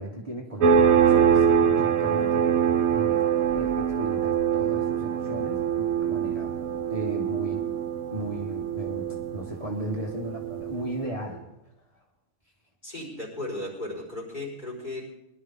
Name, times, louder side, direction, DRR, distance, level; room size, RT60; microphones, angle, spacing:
voice 1, 0.0-2.6 2.9-3.2 3.5-6.5 6.9-7.6 8.1-11.5, right 1 dB, 25° right, -1 dB, 1.6 m, -35 dB
sound 1, 0.6-10.9, right 8 dB, 70° right, 1.4 m, -24 dB
voice 2, 12.8-15.0, left 1 dB, 35° left, -4 dB, 4.7 m, -35 dB
22.0 x 12.0 x 3.7 m, 0.85 s
omnidirectional pair, 1.5 m